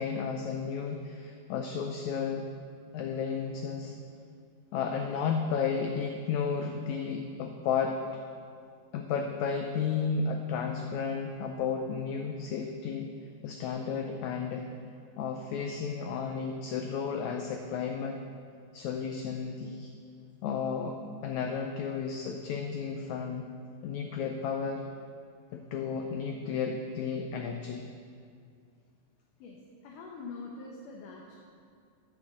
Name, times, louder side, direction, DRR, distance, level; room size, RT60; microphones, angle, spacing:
voice 1, 0.0-2.4 2.9-3.9 4.7-7.9 8.9-13.1 13.4-14.6 15.2-18.2 18.7-19.9 20.4-23.5 23.8-24.8 25.5-27.8, left 6 dB, 90° left, 4 dB, 1.6 m, -33 dB
voice 2, 29.4-31.3, left 3 dB, 75° left, -2 dB, 2.3 m, -44 dB
7.9 x 7.1 x 6.9 m, 2.3 s
omnidirectional pair, 3.9 m